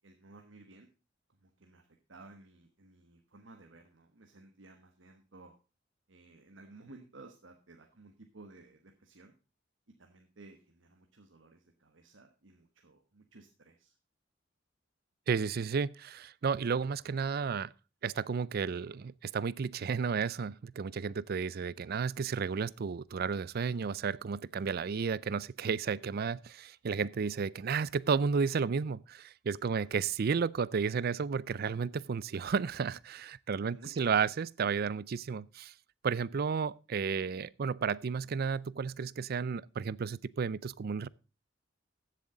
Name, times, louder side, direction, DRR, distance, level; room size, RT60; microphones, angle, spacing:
voice 1, 0.0-0.9 1.3-5.6 6.1-9.3 10.0-13.9 29.6-29.9 33.6-34.1, right 2 dB, 75° right, 1.3 m, -56 dB
voice 2, 15.3-17.7 18.0-35.7 36.0-41.1, right 5 dB, 55° right, 0.4 m, -32 dB
15.0 x 7.4 x 3.8 m
head